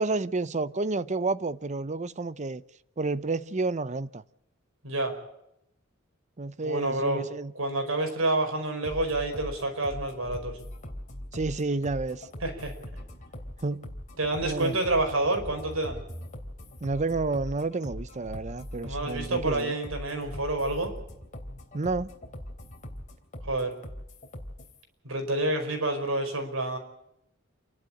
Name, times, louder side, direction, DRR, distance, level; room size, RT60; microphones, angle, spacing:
voice 1, 0.0-2.6 3.0-4.2 6.4-7.5 11.3-12.3 13.6-14.0 14.4-14.8 16.8-19.8 21.7-22.1, right 3 dB, 35° right, 0.7 m, -30 dB
voice 2, 4.8-5.2 6.6-7.2 7.5-10.6 12.4-12.7 14.2-16.0 18.8-20.9 23.4-23.7 25.0-26.8, right 2 dB, 85° right, 5.1 m, -28 dB
sound 1, 8.8-24.8, left 1 dB, 40° left, 3.2 m, -41 dB
28.5 x 11.5 x 8.6 m
head